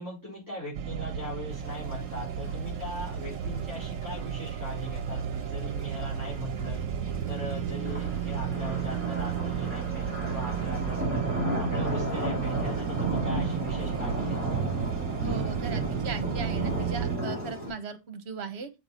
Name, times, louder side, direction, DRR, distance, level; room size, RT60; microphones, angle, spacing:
voice 1, 0.0-11.3 11.6-14.5, equal, 15° left, 4.5 m, -40 dB
sound 1, 0.7-17.2, right 8 dB, 80° right, 1.0 m, -33 dB
sound 2, 2.5-2.6 2.8-2.9 3.5-4.1 4.9-5.0 5.2-5.3 5.6-6.7 7.1-17.7, right 1 dB, 10° right, 3.8 m, -33 dB
voice 2, 15.2-18.7, right 5 dB, 55° right, 1.2 m, -37 dB
6.6 x 5.0 x 4.3 m
omnidirectional pair, 1.3 m